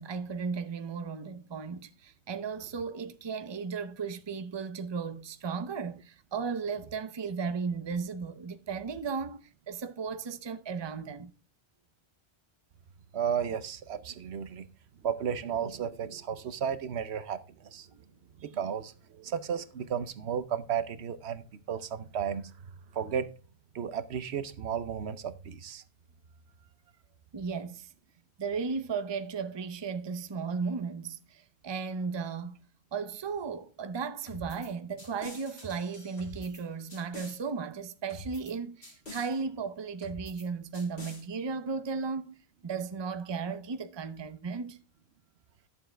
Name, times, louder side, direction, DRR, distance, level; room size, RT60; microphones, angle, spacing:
voice 1, 0.0-11.3 17.9-18.0 27.3-27.9 28.4-32.6 32.9-42.4 42.6-44.8, right 5 dB, 30° right, 0.6 m, -35 dB
voice 2, 13.1-14.7 15.0-17.9 18.4-22.5 22.9-23.3 23.7-25.8, right 8 dB, 80° right, 1.0 m, -33 dB
sound 1, 34.3-34.7 35.0-36.6 36.9-37.4 38.1-38.5 38.8-39.3 40.0-40.4 40.7-41.2, left 2 dB, 75° left, 3.7 m, -46 dB
11.5 x 7.2 x 3.3 m
omnidirectional pair, 1.1 m